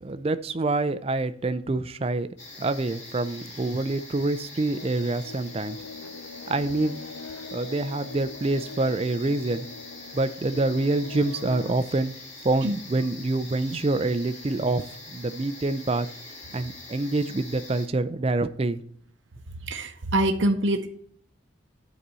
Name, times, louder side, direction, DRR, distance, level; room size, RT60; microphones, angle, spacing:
voice 1, 0.0-2.3 2.6-5.8 6.5-7.0 7.5-9.6 10.1-12.1 12.4-16.1 16.5-18.8, right 2 dB, 30° right, 12 dB, 0.4 m, -26 dB
sound 1, 2.4-17.9, left 2 dB, 35° left, 2.1 m, -44 dB
sound 2, 4.7-11.7, left 4 dB, 85° left, 0.6 m, -42 dB
voice 2, 19.6-20.9, right 1 dB, 65° right, 6 dB, 0.7 m, -25 dB
9.6 x 4.1 x 7.5 m, 0.63 s
head